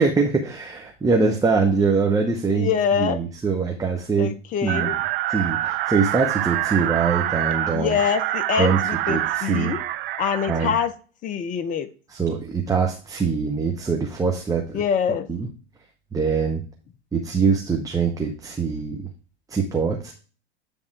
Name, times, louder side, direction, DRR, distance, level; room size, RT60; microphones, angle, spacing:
voice 1, 0.0-2.7 3.0-4.3 4.6-4.9 5.3-8.0 8.6-8.8 9.1-9.7 10.5-10.7 12.1-14.8 15.3-15.5 16.1-16.6 17.1-19.1 19.5-20.1, right 5 dB, 10° right, 1 dB, 1.0 m, -23 dB
voice 2, 2.5-3.2 4.2-5.0 7.7-9.8 10.2-10.9 11.2-11.9 14.7-15.3, left 7 dB, 25° left, 12 dB, 0.6 m, -24 dB
sound 1, 4.7-10.9, right 14 dB, 60° right, 0.7 m, -26 dB
9.8 x 3.5 x 4.7 m, 0.37 s
hypercardioid pair, 90°, 31 cm